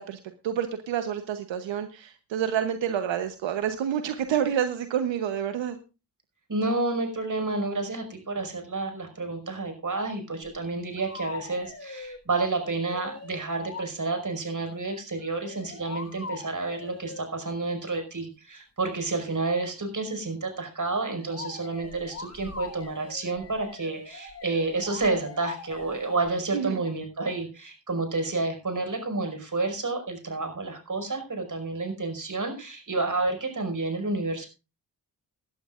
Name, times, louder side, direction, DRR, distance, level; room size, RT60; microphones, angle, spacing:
voice 1, 0.0-5.8 26.5-26.8, right 9 dB, 80° right, 8 dB, 1.1 m, -28 dB
voice 2, 6.5-34.5, right 3 dB, 45° right, 6 dB, 5.4 m, -30 dB
sound 1, 10.4-10.6 11.0-12.2 12.8-13.9 15.2-17.3 21.2-26.3, left 4 dB, 35° left, 2.7 m, -41 dB
19.5 x 11.5 x 2.5 m, 0.31 s
supercardioid pair, 45°, 44 cm